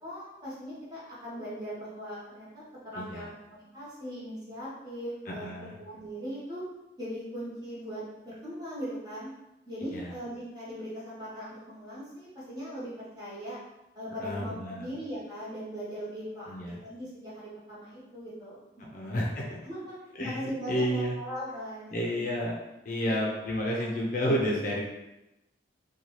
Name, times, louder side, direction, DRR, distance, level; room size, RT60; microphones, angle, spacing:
voice 1, 0.0-6.6 7.0-9.3 9.7-13.6 13.9-16.5 16.8-18.6 19.0-19.2 19.6-20.0 20.3-22.2 23.1-23.2 23.6-23.9, equal, 20° right, -10 dB, 1.1 m, -39 dB
voice 2, 2.9-3.3 5.3-5.7 9.9-10.1 14.2-14.9 16.5-16.8 18.9-19.6 20.2-21.1 21.9-22.6 22.8-24.8, equal, 45° left, -3 dB, 0.4 m, -30 dB
2.6 x 2.3 x 3.0 m, 0.94 s
head